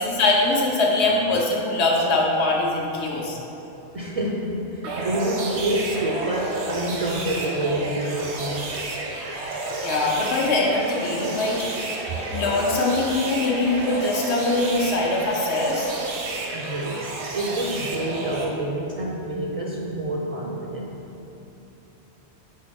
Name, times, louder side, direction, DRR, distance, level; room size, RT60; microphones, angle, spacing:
voice 1, 0.0-3.4 9.8-11.6 12.3-15.9, left 2 dB, 80° left, -2 dB, 1.1 m, -22 dB
voice 2, 3.9-8.7 12.1-12.3 16.5-21.0, right 1 dB, 50° right, -2 dB, 0.4 m, -28 dB
sound 1, 4.8-18.4, right 2 dB, 80° right, 1.1 m, -31 dB
5.5 x 3.6 x 5.2 m, 3.0 s
omnidirectional pair, 1.1 m